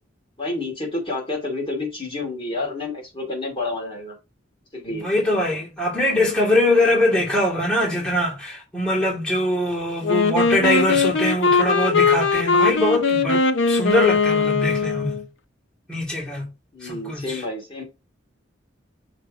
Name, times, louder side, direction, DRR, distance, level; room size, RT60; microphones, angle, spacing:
voice 1, 0.4-4.2 4.7-5.1 16.7-17.8, left 2 dB, 30° left, 2.5 m, -29 dB
voice 2, 4.9-15.2 15.9-16.5 16.8-17.4, left 1 dB, 5° left, 2.5 m, -22 dB
Wind instrument woodwind instrument, 10.0-15.2, left 4 dB, 70° left, 0.8 m, -20 dB
6.7 x 3.2 x 4.8 m
head